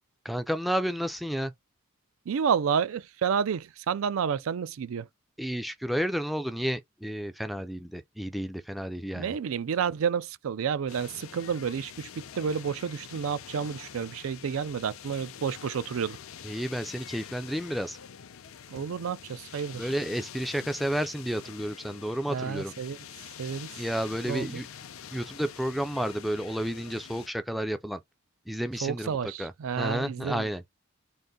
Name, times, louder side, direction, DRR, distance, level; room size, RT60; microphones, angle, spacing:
voice 1, 0.2-1.5 5.4-9.3 16.4-18.0 19.8-22.7 23.8-24.7 25.1-28.0 28.5-30.6, equal, ahead, 0.4 m, -31 dB
voice 2, 2.3-5.1 9.1-16.2 18.7-19.9 22.3-23.0 23.4-23.8 24.3-24.6 28.8-30.5, right 7 dB, 70° right, 0.4 m, -30 dB
sound 1, 10.9-27.3, left 8 dB, 75° left, 0.5 m, -46 dB
3.9 x 2.5 x 3.7 m
head